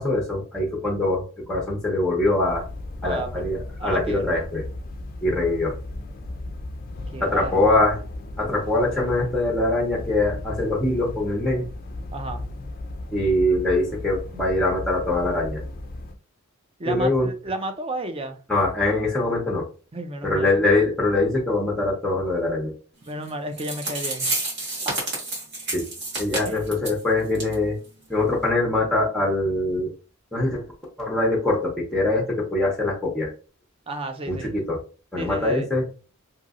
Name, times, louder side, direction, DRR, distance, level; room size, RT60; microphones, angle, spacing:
voice 1, 0.0-2.6 3.0-4.6 5.2-5.7 7.2-8.0 8.4-11.6 13.1-15.6 16.8-17.3 18.5-19.6 20.2-22.7 25.7-25.9 26.2-27.8 28.1-29.9 30.3-30.6 31.0-33.3 34.3-34.8 35.1-35.8, left 2 dB, 5° left, 0.7 m, -23 dB
sound 1, 2.4-16.1, left 2 dB, 40° left, 0.4 m, -36 dB
voice 2, 3.0-3.5 3.8-4.3 7.1-7.8 12.1-12.4 16.8-18.4 19.9-20.5 23.1-24.3 24.9-25.0 26.4-26.7 33.9-34.5 35.2-35.7, right 2 dB, 25° right, 0.4 m, -32 dB
sound 2, 23.3-23.4 23.6-27.0 27.3-27.5 27.8-27.9 28.4-28.5, right 2 dB, 50° right, 1.6 m, -29 dB
3.0 x 2.7 x 2.5 m
head